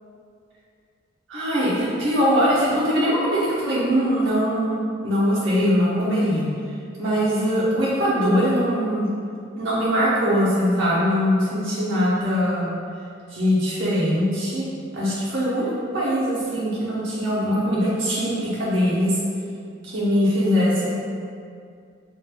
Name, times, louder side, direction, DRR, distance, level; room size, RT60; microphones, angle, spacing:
voice 1, 1.3-6.4 7.0-9.1 9.6-12.7 13.3-14.6 14.9-19.1 19.8-20.9, equal, 90° right, -9 dB, 0.9 m, -21 dB
4.8 x 2.5 x 2.3 m, 2.3 s
head